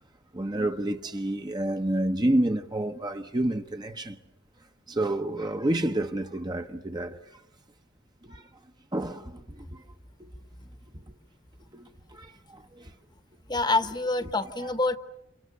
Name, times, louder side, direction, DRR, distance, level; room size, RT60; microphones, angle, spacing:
voice 1, 0.3-4.2 4.9-7.2 8.2-8.4 8.9-9.8 11.7-12.9 14.6-14.7, right 1 dB, 25° right, 1.0 m, -29 dB
voice 2, 13.5-15.0, left 2 dB, 25° left, 1.2 m, -26 dB
30.0 x 28.0 x 7.0 m
head